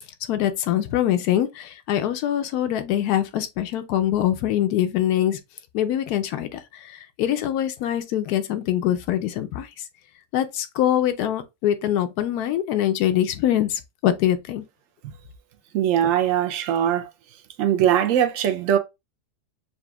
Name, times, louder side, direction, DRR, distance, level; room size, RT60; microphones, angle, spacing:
voice 1, 0.3-5.4 5.7-9.7 10.3-14.6, left 11 dB, 75° left, 1.1 m, -24 dB
voice 2, 15.7-17.1 17.6-18.8, right 10 dB, 65° right, 0.8 m, -21 dB
6.8 x 2.5 x 2.2 m
omnidirectional pair, 1.7 m